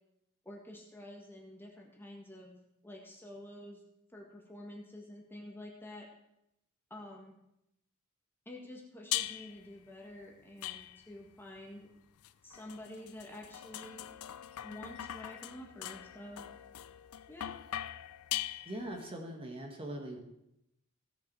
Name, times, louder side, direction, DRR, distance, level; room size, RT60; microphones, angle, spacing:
voice 1, 0.5-3.8 4.1-6.1 6.9-7.4 8.5-11.9 12.4-14.1 14.6-16.5 17.3-17.6, left 1 dB, 10° left, -1 dB, 1.6 m, -49 dB
sound 1, 9.1-9.7 10.6-11.3 12.2-19.1, left 13 dB, 75° left, 0.5 m, -41 dB
voice 2, 18.7-20.2, right 1 dB, 25° right, 1 dB, 1.7 m, -41 dB
16.0 x 7.1 x 4.7 m, 0.82 s
head